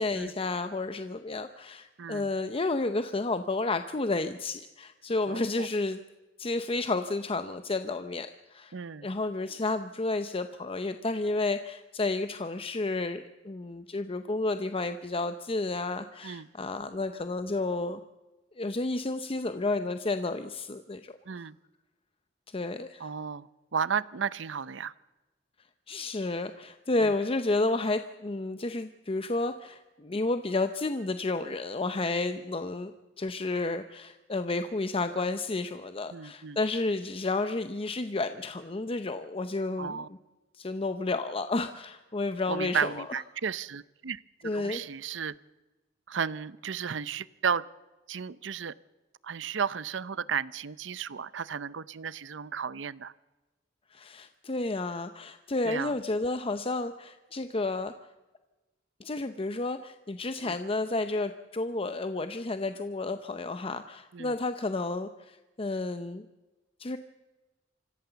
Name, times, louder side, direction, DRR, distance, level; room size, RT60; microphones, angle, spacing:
voice 1, 0.0-6.0 6.4-8.7 9.0-18.0 18.6-21.2 22.5-23.1 25.9-40.0 40.5-43.0 44.4-44.9 53.9-57.9 59.0-66.2 66.8-67.0, left 2 dB, 30° left, 9 dB, 0.7 m, -31 dB
voice 2, 2.0-2.3 5.3-5.7 8.7-9.1 16.2-16.5 21.3-21.6 23.0-24.9 27.0-27.1 36.1-36.6 39.8-40.1 42.5-45.3 46.1-47.6 48.1-48.7 49.2-53.1 55.7-55.9 60.4-60.6 64.1-64.3, right 7 dB, 75° right, 18 dB, 0.6 m, -34 dB
26.0 x 15.5 x 6.9 m, 1.1 s
head